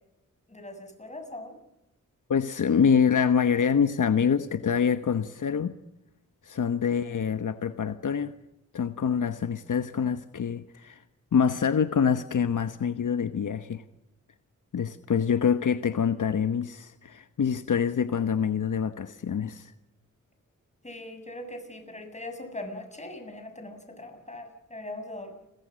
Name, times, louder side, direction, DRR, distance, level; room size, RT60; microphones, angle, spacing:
voice 1, 0.5-1.5 6.9-7.2 20.8-25.3, left 1 dB, 20° left, 5 dB, 6.9 m, -41 dB
voice 2, 2.3-5.8 6.4-8.3 8.7-11.0 11.3-13.8 14.7-19.7, left 7 dB, 70° left, 10 dB, 1.2 m, -25 dB
30.0 x 23.0 x 6.4 m, 0.90 s
wide cardioid pair, 90°, 32 cm